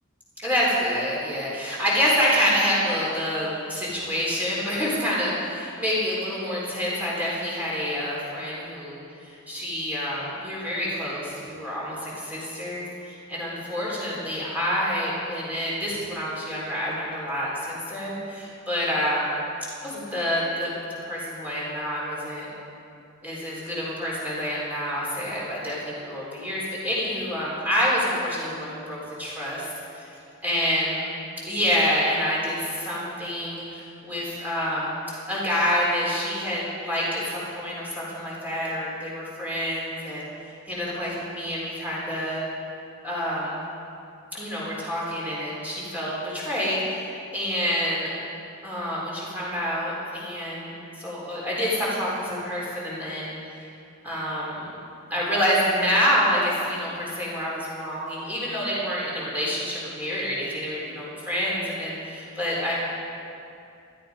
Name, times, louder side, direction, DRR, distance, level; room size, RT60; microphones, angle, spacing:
voice 1, 0.4-19.4 19.8-20.7 21.0-22.5 23.2-29.7 29.9-30.2 30.4-31.0 31.5-35.0 35.3-40.3 40.7-42.4 43.0-43.6 44.3-48.1 48.6-50.7 51.0-53.7 54.0-54.7 55.1-62.7, equal, 10° right, -7 dB, 4.1 m, -27 dB
16.5 x 12.5 x 5.3 m, 2.5 s
head